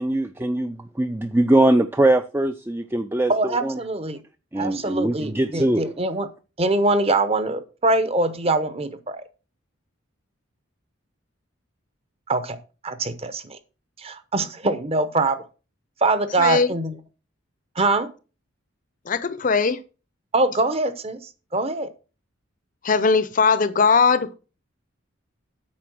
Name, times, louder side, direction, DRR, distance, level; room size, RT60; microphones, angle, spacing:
voice 1, 0.0-3.8 4.5-6.0, right 1 dB, 10° right, 0.4 m, -22 dB
voice 2, 3.3-4.2 4.6-6.3 6.6-9.2 12.3-12.6 12.8-13.6 14.0-15.4 16.0-17.0 17.8-18.1 20.3-21.2 21.5-21.9, right 2 dB, 30° right, 0.9 m, -23 dB
voice 3, 16.4-16.7 19.1-19.8 22.8-24.3, left 5 dB, 40° left, 0.6 m, -19 dB
8.5 x 5.3 x 6.2 m
head